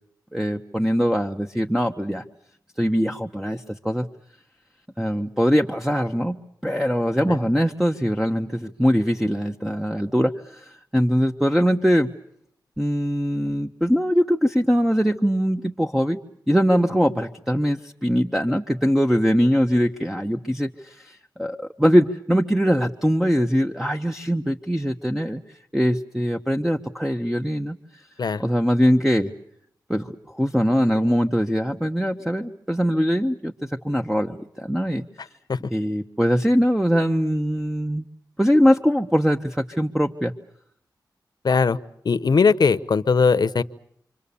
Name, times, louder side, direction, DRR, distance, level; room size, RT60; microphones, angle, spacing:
voice 1, 0.3-2.2 2.8-4.1 5.0-12.1 12.8-16.2 16.5-25.4 25.7-28.0 28.4-29.3 29.9-35.0 35.7-38.1 38.4-40.3, equal, 5° right, 4 dB, 1.1 m, -22 dB
voice 2, 41.4-41.8 42.0-43.6, left 5 dB, 65° left, 14 dB, 1.0 m, -19 dB
28.5 x 25.0 x 7.1 m, 0.69 s
cardioid pair, 65°, 8 cm